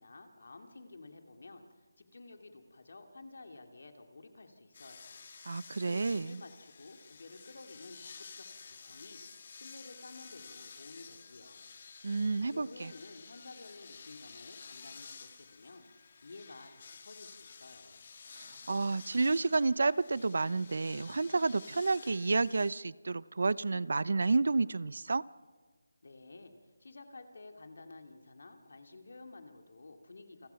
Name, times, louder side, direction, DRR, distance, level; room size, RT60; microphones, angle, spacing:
voice 1, 0.0-5.2 5.5-11.7 12.3-18.1 26.0-30.5, left 3 dB, 60° left, 5 dB, 2.6 m, -52 dB
sound 1, 4.7-22.7, left 5 dB, 35° left, 1.5 m, -52 dB
voice 2, 5.5-6.4 12.0-12.9 18.3-25.2, right 3 dB, 60° right, 21 dB, 0.6 m, -30 dB
29.0 x 20.5 x 5.8 m, 1.4 s
figure-of-eight pair, 170°, 0 cm